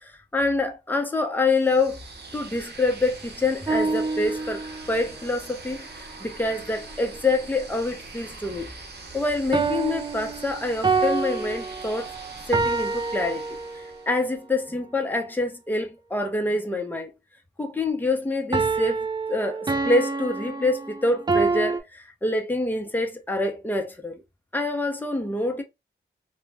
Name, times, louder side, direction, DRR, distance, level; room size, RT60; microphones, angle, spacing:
voice 1, 0.0-2.0 2.3-8.7 9.1-12.1 12.5-13.4 14.1-17.1 17.6-19.0 19.3-24.2 24.5-25.6, left 2 dB, 10° left, 0.7 m, -26 dB
sound 1, 1.5-14.3, right 3 dB, 60° right, 0.8 m, -43 dB
sound 2, 3.7-5.0 9.5-14.1 18.5-21.8, right 4 dB, 20° right, 0.4 m, -27 dB
2.4 x 2.1 x 3.2 m
cardioid pair, 65°, 19 cm